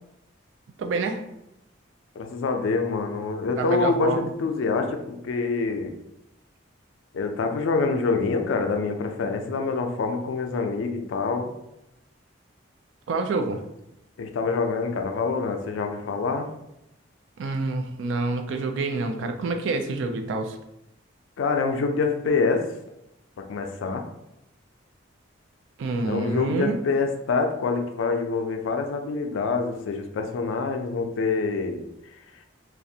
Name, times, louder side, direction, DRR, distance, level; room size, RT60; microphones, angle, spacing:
voice 1, 0.8-1.2 3.5-4.3 13.1-13.6 17.4-20.6 25.8-26.8, right 3 dB, 75° right, 6 dB, 0.3 m, -27 dB
voice 2, 2.2-6.0 7.1-11.5 14.2-16.5 21.4-22.7 23.4-24.1 26.0-32.1, left 4 dB, 80° left, 5 dB, 0.4 m, -26 dB
2.4 x 2.0 x 2.7 m, 0.85 s
head